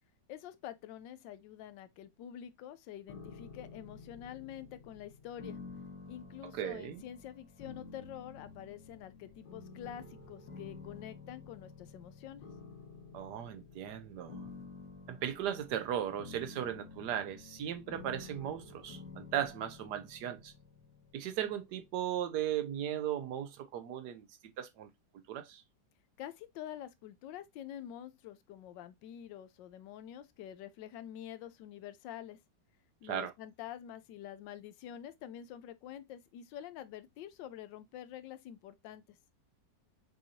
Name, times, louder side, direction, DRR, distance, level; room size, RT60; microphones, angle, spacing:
voice 1, 0.3-5.6 6.1-12.4 26.2-32.4 33.0-39.2, left 11 dB, 80° left, 1.2 m, -47 dB
sound 1, 3.1-22.0, left 4 dB, 65° left, 1.9 m, -51 dB
voice 2, 6.5-7.0 13.1-14.5 15.1-20.5 21.1-24.3 24.6-24.9 25.3-25.6 33.0-33.3, right 10 dB, 70° right, 1.1 m, -37 dB
6.2 x 2.7 x 2.8 m
omnidirectional pair, 2.0 m